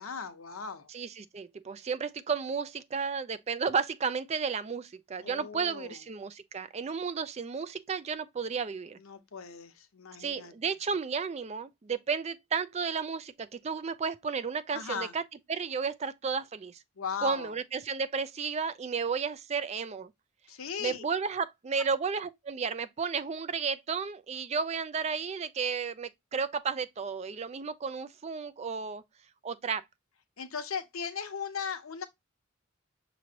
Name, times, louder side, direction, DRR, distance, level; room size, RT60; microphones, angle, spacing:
voice 1, 0.0-0.9 5.2-6.0 9.0-10.5 14.7-15.1 17.0-17.6 20.5-21.0 30.4-32.0, left 6 dB, 85° left, 0.8 m, -38 dB
voice 2, 0.9-9.0 10.2-15.2 15.5-16.8 17.2-20.1 20.8-29.0 29.4-29.8, right 5 dB, 30° right, 0.3 m, -33 dB
6.1 x 3.1 x 2.8 m
head